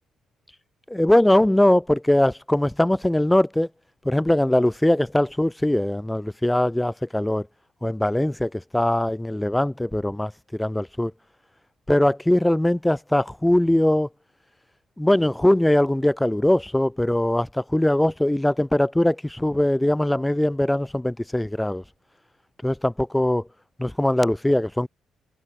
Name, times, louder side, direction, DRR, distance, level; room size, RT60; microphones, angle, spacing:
voice 1, 0.9-3.7 4.0-7.5 7.8-11.1 11.9-14.1 15.0-21.8 22.6-23.5 23.8-24.9, left 1 dB, 5° left, 3.8 m, -21 dB
cardioid pair, 90°, 0 cm